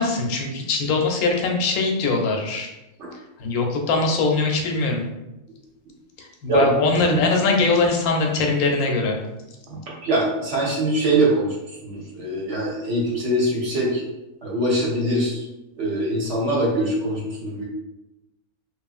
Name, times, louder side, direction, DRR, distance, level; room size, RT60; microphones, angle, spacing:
voice 1, 0.0-2.7 3.4-5.0 6.2-9.2, left 3 dB, 80° left, 1 dB, 1.0 m, -22 dB
voice 2, 6.4-6.7 7.1-7.2 9.7-11.5 11.8-14.0 14.4-15.4 15.8-17.6, right 1 dB, 60° right, -4 dB, 0.9 m, -23 dB
2.9 x 2.4 x 2.4 m, 0.96 s
omnidirectional pair, 1.5 m